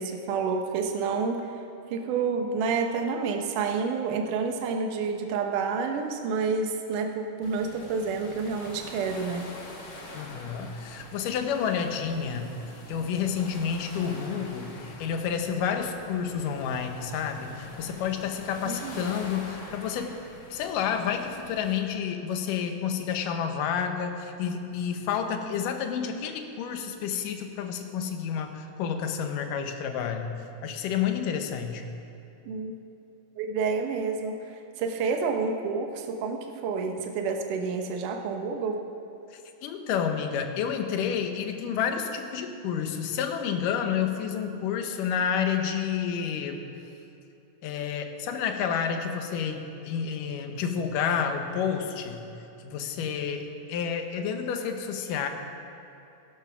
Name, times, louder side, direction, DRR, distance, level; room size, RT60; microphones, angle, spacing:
voice 1, 0.0-1.6 1.9-9.5 18.7-19.1 32.5-32.8 33.4-38.8, right 5 dB, 80° right, 4 dB, 2.4 m, -29 dB
sound 1, 7.4-21.8, left 2 dB, 40° left, 1.9 m, -45 dB
voice 2, 10.1-12.6 12.9-20.2 20.5-30.2 30.6-31.8 39.3-46.6 47.6-52.2 52.6-55.3, left 7 dB, 85° left, 6 dB, 2.6 m, -30 dB
14.5 x 12.0 x 6.0 m, 2.8 s
omnidirectional pair, 3.7 m